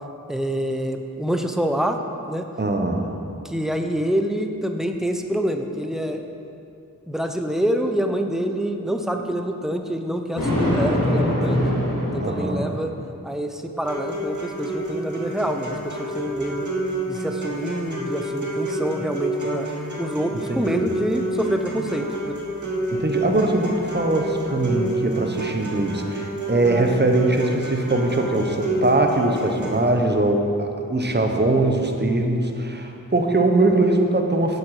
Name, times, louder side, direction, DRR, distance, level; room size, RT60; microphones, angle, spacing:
voice 1, 0.3-2.0 2.3-2.5 3.4-6.2 7.1-11.6 12.1-12.9 13.2-16.7 17.1-19.7 20.0-22.4, equal, ahead, 5 dB, 0.6 m, -26 dB
voice 2, 2.6-3.2 12.2-12.7 20.3-20.9 22.9-34.6, right 2 dB, 30° right, 3 dB, 0.9 m, -21 dB
Thunder, 10.4-12.9, equal, 80° left, 1.9 m, -23 dB
sound 1, 13.8-29.8, right 2 dB, 60° right, 1.9 m, -29 dB
8.0 x 7.7 x 4.9 m, 2.7 s
wide cardioid pair, 45°, 33 cm